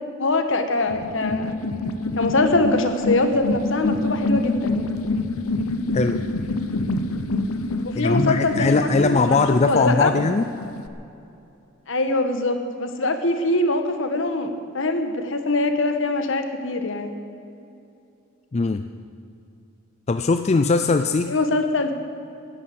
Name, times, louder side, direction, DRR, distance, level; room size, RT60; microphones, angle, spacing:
voice 1, 0.2-1.5 2.1-4.8 7.8-9.4 9.7-10.1 11.9-17.1 21.3-21.9, left 2 dB, 60° left, 7 dB, 1.4 m, -23 dB
sound 1, 0.9-10.9, left 2 dB, 85° left, 0.8 m, -27 dB
voice 2, 7.9-10.5 18.5-18.9 20.1-21.3, left 3 dB, 30° left, 9 dB, 0.4 m, -20 dB
16.0 x 9.9 x 7.7 m, 2.6 s
head